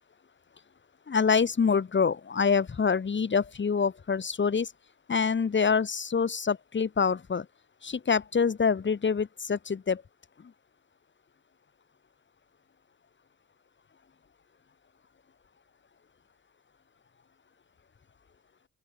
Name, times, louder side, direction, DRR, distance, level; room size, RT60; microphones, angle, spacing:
voice 1, 1.1-4.7 5.1-7.5 7.8-10.0, left 5 dB, 40° left, 4.7 m, -26 dB
open air
cardioid pair, 90°, 30 cm